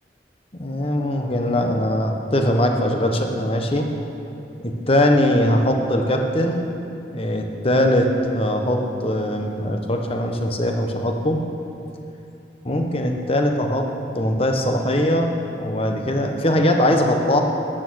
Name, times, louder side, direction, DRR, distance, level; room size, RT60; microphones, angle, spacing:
voice 1, 0.6-3.9 4.6-6.6 7.1-8.1 8.3-11.4 12.6-13.9 14.1-17.4, left 1 dB, 30° left, 3 dB, 1.1 m, -21 dB
13.5 x 8.9 x 6.4 m, 2.8 s
head